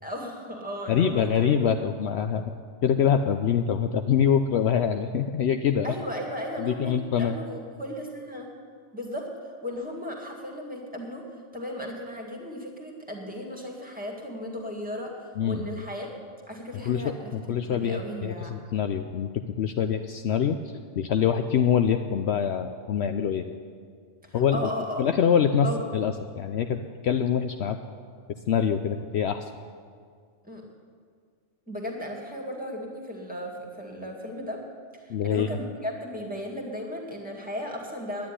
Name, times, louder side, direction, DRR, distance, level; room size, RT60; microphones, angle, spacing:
voice 1, 0.0-1.9 5.8-8.5 8.9-11.2 11.5-16.1 16.5-17.3 17.6-18.5 24.2-25.0 25.6-25.8 30.4-30.6 31.7-34.6 34.9-38.3, left 1 dB, 5° right, -1 dB, 2.0 m, -36 dB
voice 2, 0.9-2.5 2.8-5.9 6.6-7.4 15.4-15.8 16.9-17.0 17.3-19.3 19.6-20.6 21.0-23.5 24.3-24.6 25.0-25.7 25.9-27.8 28.5-29.5 35.1-35.5, left 8 dB, 65° left, 7 dB, 0.8 m, -24 dB
10.5 x 9.7 x 10.0 m, 2.1 s
omnidirectional pair, 1.3 m